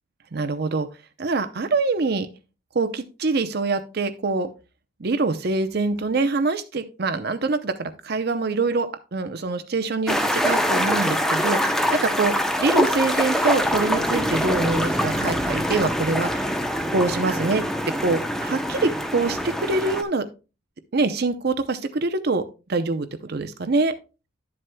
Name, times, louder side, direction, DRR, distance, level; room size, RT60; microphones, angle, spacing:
voice 1, 0.3-0.9 1.2-2.3 2.7-4.5 5.0-12.3 12.6-16.4 16.9-17.6 18.0-20.3 20.9-22.4 22.7-23.9, right 3 dB, 55° right, 10 dB, 0.7 m, -24 dB
sound 1, 10.1-20.0, equal, ahead, 0.7 m, -24 dB
11.0 x 7.6 x 2.2 m, 0.31 s
head